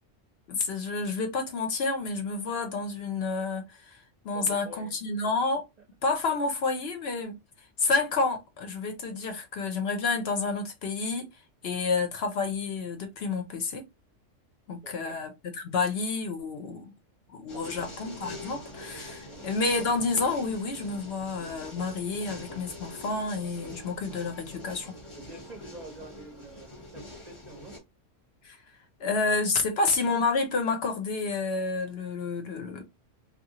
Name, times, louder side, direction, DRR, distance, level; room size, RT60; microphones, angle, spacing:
voice 1, 0.5-4.0 4.2-5.7 6.0-7.4 7.8-11.3 11.6-13.9 14.7-16.9 17.3-24.9 28.4-28.6 29.0-32.8, left 4 dB, 60° left, 0.8 m, -29 dB
voice 2, 4.3-4.9 14.8-15.2 17.5-18.0 19.3-19.5 25.1-27.8 29.0-29.1, right 2 dB, 45° right, 0.6 m, -48 dB
sound 1, 17.5-27.8, left 1 dB, 30° left, 0.8 m, -44 dB
2.8 x 2.3 x 2.7 m
omnidirectional pair, 1.3 m